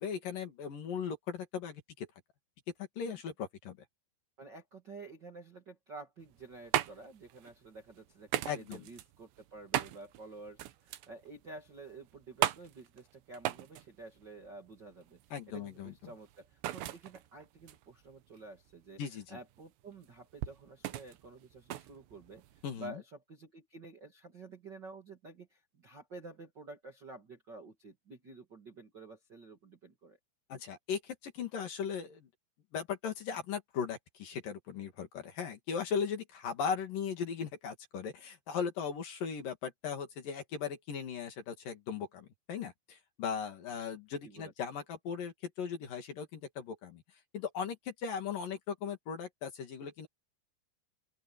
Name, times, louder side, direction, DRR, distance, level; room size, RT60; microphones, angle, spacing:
voice 1, 0.0-2.1 3.0-3.8 8.4-8.8 15.3-15.9 19.0-19.4 22.6-23.0 30.5-32.3 32.7-47.0 47.3-50.1, left 6 dB, 55° left, 3.7 m, -38 dB
voice 2, 4.4-15.2 15.5-19.0 19.3-22.4 22.7-30.2 44.2-44.5, right 3 dB, 40° right, 1.7 m, -50 dB
sound 1, 6.2-22.8, right 13 dB, 75° right, 3.3 m, -39 dB
open air
omnidirectional pair, 5.1 m